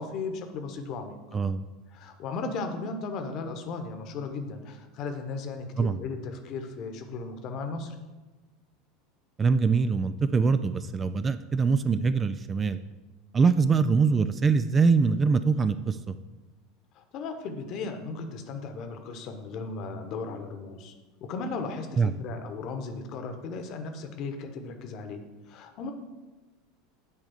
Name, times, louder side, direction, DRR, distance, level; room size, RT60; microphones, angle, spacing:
voice 1, 0.0-1.4 1.9-7.9 16.9-20.9 21.2-25.2 25.5-25.9, left 4 dB, 45° left, 6 dB, 1.1 m, -36 dB
voice 2, 9.4-12.8 13.3-16.1 22.0-22.1, right 5 dB, 20° right, 12 dB, 0.4 m, -23 dB
9.5 x 3.6 x 7.0 m, 1.2 s
figure-of-eight pair, 75°, 0 cm